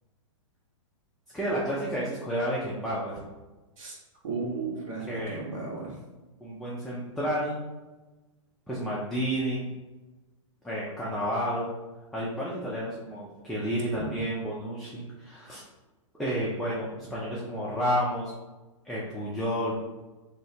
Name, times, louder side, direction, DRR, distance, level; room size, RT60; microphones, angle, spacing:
voice 1, 1.3-3.1 5.0-5.4 6.4-7.6 8.7-9.7 10.6-11.7 12.1-15.6 16.2-18.3 18.8-19.8, equal, ahead, -7 dB, 0.4 m, -31 dB
voice 2, 4.2-6.0 13.9-14.2, right 4 dB, 75° right, -4 dB, 1.3 m, -35 dB
3.1 x 2.8 x 2.7 m, 1.2 s
hypercardioid pair, 130°, 17 cm